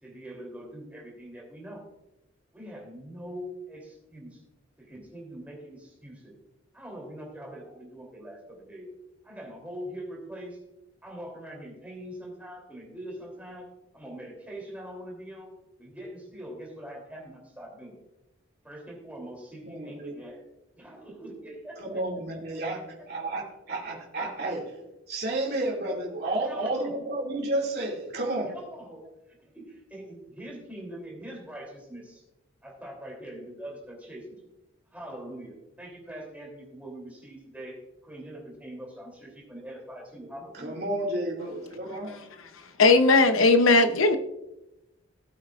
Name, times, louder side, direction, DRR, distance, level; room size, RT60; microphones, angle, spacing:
voice 1, 0.0-1.9 2.5-4.4 4.8-6.4 6.7-8.9 9.2-10.6 11.0-13.7 13.9-18.0 18.6-20.4 20.7-22.0 22.5-22.6 26.4-26.9 28.5-32.2 32.6-34.4 34.9-40.8, right 1 dB, 5° right, -1 dB, 3.1 m, -43 dB
voice 2, 19.6-20.1 21.8-22.8 23.1-24.8 25.1-28.5 40.5-42.2, right 1 dB, 50° right, -2 dB, 2.4 m, -31 dB
voice 3, 42.8-44.2, left 3 dB, 80° left, 8 dB, 0.9 m, -18 dB
18.0 x 8.3 x 2.5 m, 0.92 s
head